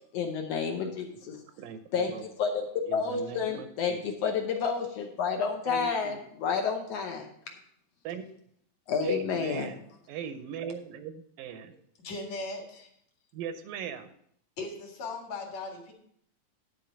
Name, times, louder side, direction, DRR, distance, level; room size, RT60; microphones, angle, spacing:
voice 1, 0.1-1.4 1.9-2.1 2.4-2.6 2.9-7.3 8.9-9.7, left 6 dB, 70° left, 1.6 m, -30 dB
voice 2, 1.6-2.2 2.9-4.1 5.7-6.2 8.0-8.3 9.0-9.8 10.1-11.7 13.3-14.1, right 7 dB, 85° right, 2.4 m, -39 dB
voice 3, 12.0-12.9 14.6-15.9, left 3 dB, 55° left, 2.8 m, -38 dB
11.0 x 4.6 x 6.6 m
omnidirectional pair, 4.0 m